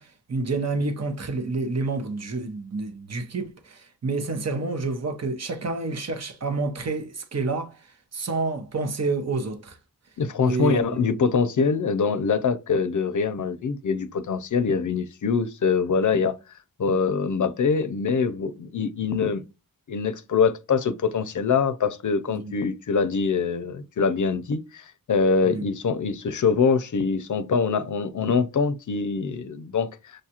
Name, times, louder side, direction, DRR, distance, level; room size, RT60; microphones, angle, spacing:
voice 1, 0.0-7.8 8.1-9.8 10.5-11.0 22.3-22.5 25.4-25.6, right 3 dB, 45° right, 0.8 m, -29 dB
voice 2, 10.2-16.4 16.8-19.4 19.9-29.9, left 5 dB, 60° left, 0.5 m, -24 dB
6.4 x 2.4 x 2.8 m
wide cardioid pair, 80°, 35 cm